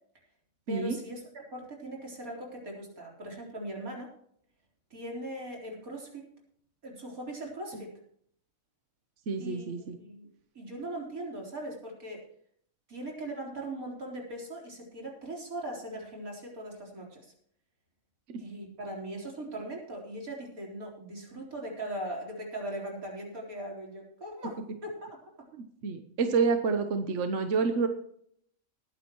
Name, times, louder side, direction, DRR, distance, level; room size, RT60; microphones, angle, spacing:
voice 1, 0.7-4.1 4.9-6.2 6.8-7.9 9.4-10.3 10.5-12.2 12.9-17.3 18.4-25.2, right 1 dB, 85° right, -1 dB, 4.4 m, -40 dB
voice 2, 9.3-10.0 25.8-27.9, right 5 dB, 60° right, 7 dB, 1.3 m, -28 dB
20.0 x 9.9 x 3.1 m, 0.65 s
omnidirectional pair, 1.4 m